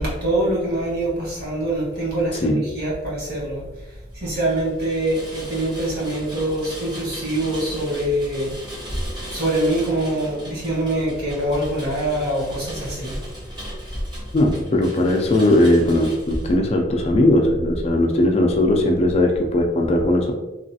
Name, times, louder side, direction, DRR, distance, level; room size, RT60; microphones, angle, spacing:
voice 1, 0.0-8.8 9.3-13.2, right 1 dB, 50° right, -5 dB, 1.3 m, -24 dB
Rain, 4.2-16.5, equal, 20° right, 0.8 m, -39 dB
voice 2, 14.3-20.3, left 1 dB, 30° left, 2 dB, 0.3 m, -18 dB
3.0 x 2.4 x 2.7 m, 1.1 s
head